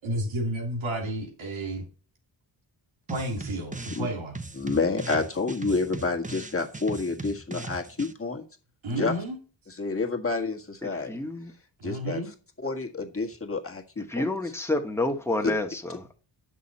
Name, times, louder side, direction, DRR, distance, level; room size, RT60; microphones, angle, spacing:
voice 1, 0.0-1.9 3.1-4.4 8.8-9.4 11.8-12.3, right 1 dB, 90° right, 1 dB, 3.1 m, -31 dB
sound 1, 3.1-4.1 4.3-8.1, right 3 dB, 15° right, 0.8 m, -39 dB
voice 2, 4.6-8.4 8.9-9.1 9.8-11.2 11.8-12.2 12.6-14.3 15.4-15.5, left 3 dB, 30° left, 2 dB, 1.7 m, -29 dB
voice 3, 10.8-11.5 14.1-16.2, left 2 dB, 5° left, 4 dB, 1.4 m, -29 dB
9.4 x 6.2 x 4.2 m, 0.37 s
cardioid pair, 75°, 46 cm